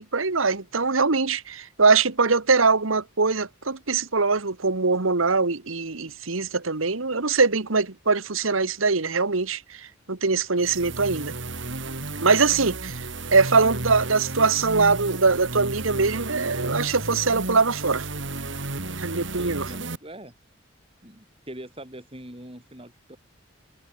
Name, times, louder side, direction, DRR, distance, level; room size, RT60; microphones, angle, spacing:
voice 1, 0.0-11.3 12.2-18.1 19.0-19.7, right 4 dB, 85° right, 1.6 m, -22 dB
sound 1, 10.6-20.0, right 2 dB, 65° right, 3.0 m, -33 dB
voice 2, 19.4-20.3 21.0-23.2, right 1 dB, 25° right, 6.0 m, -42 dB
head